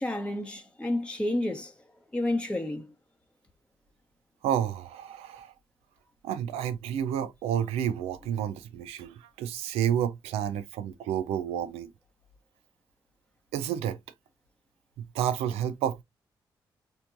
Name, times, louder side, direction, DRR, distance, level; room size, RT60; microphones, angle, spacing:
voice 1, 0.0-1.8 2.1-2.9, left 1 dB, 10° left, 1.0 m, -30 dB
voice 2, 4.4-5.5 6.2-11.9 13.5-14.0 15.0-16.0, right 9 dB, 75° right, 0.5 m, -30 dB
4.3 x 2.7 x 2.6 m
hypercardioid pair, 40°, 10 cm